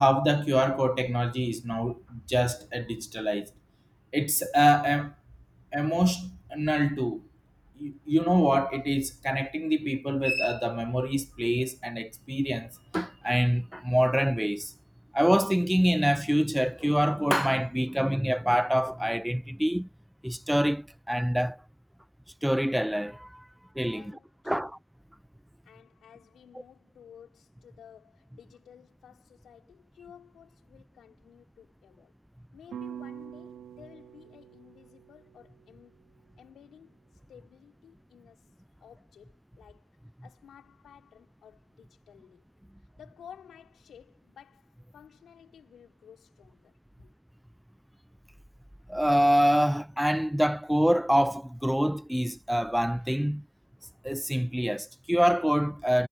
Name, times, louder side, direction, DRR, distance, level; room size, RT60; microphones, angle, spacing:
voice 1, 0.0-3.5 4.1-5.1 5.7-7.2 7.8-14.7 15.1-19.9 20.2-21.6 22.4-23.5 23.8-24.0 24.5-24.8 48.9-53.4 54.0-56.1, equal, ahead, 0.3 m, -26 dB
voice 2, 23.9-24.7 25.6-32.2 32.5-37.0 37.3-40.0 40.2-42.5 43.0-47.1, left 9 dB, 65° left, 3.9 m, -54 dB
sound 1, 32.7-37.0, right 9 dB, 70° right, 3.1 m, -46 dB
cardioid pair, 90°, 0 cm